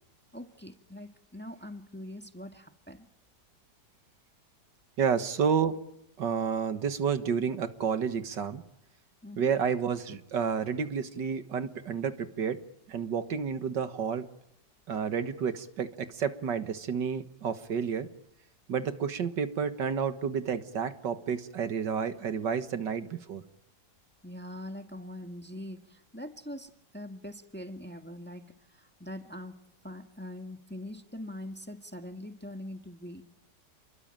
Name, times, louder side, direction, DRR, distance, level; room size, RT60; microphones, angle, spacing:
voice 1, 0.3-3.1 9.2-9.5 24.2-33.3, left 1 dB, 5° left, 6 dB, 1.6 m, -43 dB
voice 2, 5.0-5.8 6.2-8.6 9.4-12.6 12.9-14.3 14.9-18.1 18.7-23.4, right 6 dB, 80° right, 10 dB, 2.1 m, -30 dB
29.5 x 22.0 x 9.0 m, 0.82 s
omnidirectional pair, 1.9 m